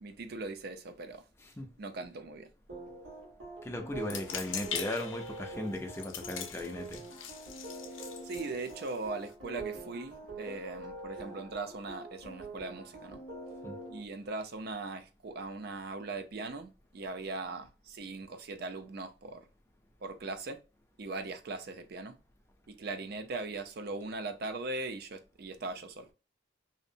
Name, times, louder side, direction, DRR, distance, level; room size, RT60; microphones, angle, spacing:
voice 1, 0.0-1.2 1.8-2.5 8.2-13.2 13.9-19.4 20.0-20.6 21.0-22.1 22.7-26.1, right 3 dB, 55° right, 0.4 m, -40 dB
sound 1, 2.7-14.0, right 2 dB, 80° right, 1.3 m, -45 dB
voice 2, 3.6-7.0 13.6-13.8, left 1 dB, 15° left, 0.4 m, -37 dB
sound 2, 4.0-9.3, left 7 dB, 85° left, 0.5 m, -42 dB
2.7 x 2.0 x 2.5 m
head